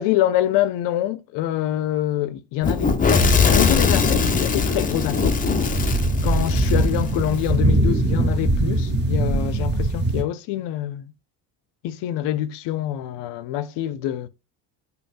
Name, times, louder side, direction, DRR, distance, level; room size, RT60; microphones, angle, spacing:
voice 1, 0.0-2.9 3.5-5.4 6.2-11.1 11.8-14.3, left 12 dB, 60° left, 0.6 m, -25 dB
Fire / Explosion, 2.6-7.5, left 5 dB, 20° left, 0.5 m, -21 dB
sound 1, 3.6-10.2, right 2 dB, 20° right, 1.0 m, -23 dB
5.3 x 2.2 x 2.5 m
supercardioid pair, 80°, 48 cm